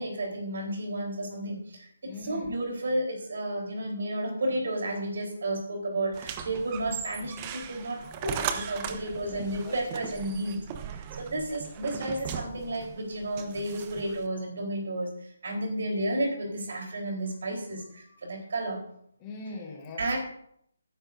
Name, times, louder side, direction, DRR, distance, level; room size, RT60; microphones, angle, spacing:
voice 1, 0.0-10.6 11.1-15.1 15.4-18.8 20.0-20.2, right 1 dB, 55° right, 2 dB, 3.7 m, -32 dB
voice 2, 2.0-2.5 8.9-9.8 10.0-10.2 19.2-20.2, left 3 dB, 20° left, -2 dB, 3.9 m, -42 dB
sound 1, 6.1-14.3, right 8 dB, 25° right, 0.8 m, -38 dB
17.5 x 10.0 x 2.6 m, 0.69 s
figure-of-eight pair, 145°, 0 cm